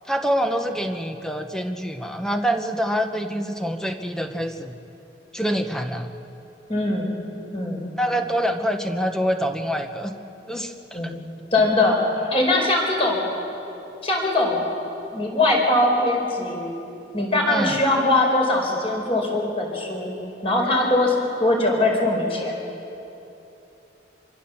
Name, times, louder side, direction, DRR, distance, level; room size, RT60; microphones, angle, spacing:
voice 1, 0.1-4.8 5.3-6.1 8.0-10.1 10.5-11.0 17.5-17.8, equal, 5° left, 5 dB, 1.1 m, -25 dB
voice 2, 6.7-7.1 7.5-7.9 10.9-11.1 11.5-12.0 12.3-13.3 14.0-14.7 15.1-16.7 17.1-20.2 20.4-21.1 21.4-22.5, left 2 dB, 30° left, 0 dB, 4.7 m, -21 dB
26.0 x 24.0 x 7.2 m, 3.0 s
head